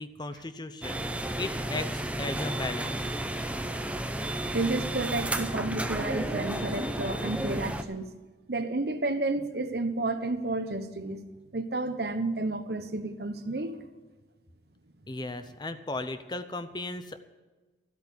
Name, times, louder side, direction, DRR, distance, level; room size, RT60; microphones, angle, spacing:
voice 1, 0.0-3.1 15.1-17.2, left 2 dB, 25° left, 11 dB, 0.7 m, -36 dB
sound 1, 0.8-7.8, right 1 dB, 10° right, 0.7 m, -32 dB
voice 2, 4.5-8.1 8.5-11.2 11.5-13.8, right 2 dB, 60° right, 10 dB, 1.1 m, -31 dB
13.5 x 8.5 x 8.4 m, 1.2 s
head